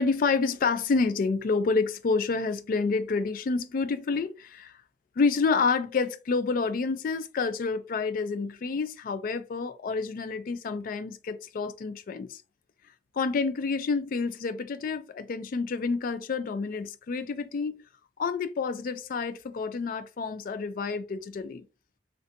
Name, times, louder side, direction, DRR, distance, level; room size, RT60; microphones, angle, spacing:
voice 1, 0.0-4.7 5.2-12.4 13.1-17.8 18.2-21.6, left 4 dB, 50° left, 0.3 m, -28 dB
3.3 x 2.5 x 2.6 m
head